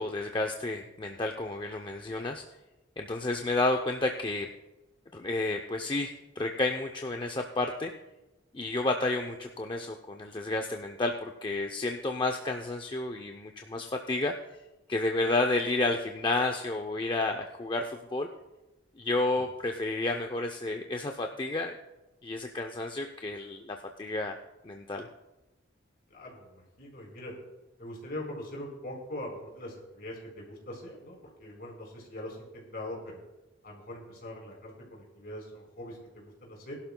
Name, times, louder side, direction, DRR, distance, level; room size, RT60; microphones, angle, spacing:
voice 1, 0.0-2.4 3.0-4.5 5.1-7.9 8.5-14.3 14.9-18.3 19.0-21.8 22.2-24.3 24.6-25.1, left 2 dB, 25° left, 3 dB, 0.5 m, -31 dB
voice 2, 26.1-27.3 27.8-33.2 33.6-36.8, left 1 dB, 50° left, -1 dB, 4.2 m, -42 dB
21.0 x 11.5 x 2.2 m, 1.0 s
head